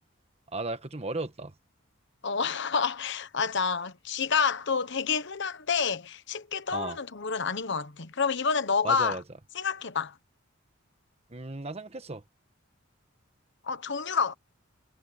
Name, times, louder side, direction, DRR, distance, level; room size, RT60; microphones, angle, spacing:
voice 1, 0.5-1.5 6.7-7.0 8.8-9.2 11.3-12.2, right 2 dB, 30° right, 1.3 m, -35 dB
voice 2, 2.2-9.2 9.5-10.1 13.6-14.3, left 5 dB, 60° left, 1.2 m, -28 dB
head